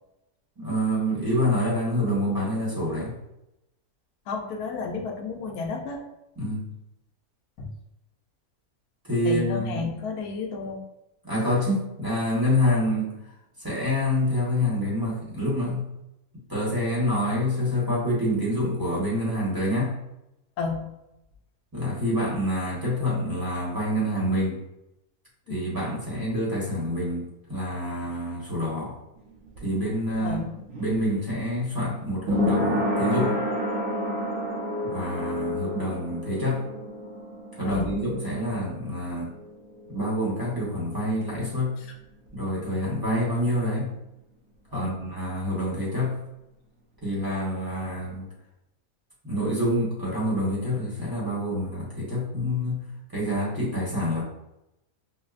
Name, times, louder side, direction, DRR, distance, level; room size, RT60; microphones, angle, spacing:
voice 1, 0.6-3.1 6.4-6.7 9.1-9.9 11.2-13.2 13.6-15.9 16.5-20.0 21.7-24.6 25.5-29.0 29.6-30.4 30.8-33.4 34.8-36.6 37.6-39.3 39.9-41.7 42.3-43.9 44.7-46.2 47.0-48.3 49.2-52.8 53.1-54.2, left 1 dB, 15° right, -6 dB, 0.9 m, -27 dB
voice 2, 4.3-6.0 7.6-7.7 9.2-10.8 20.6-20.9 25.5-25.7 30.2-30.5 37.6-38.0 38.6-38.7 41.8-41.9 44.7-44.9, left 4 dB, 80° left, 1 dB, 1.2 m, -32 dB
sound 1, 29.2-40.7 41.0-41.1, left 1 dB, 65° right, 1.0 m, -30 dB
5.2 x 2.0 x 2.4 m, 0.88 s
omnidirectional pair, 1.6 m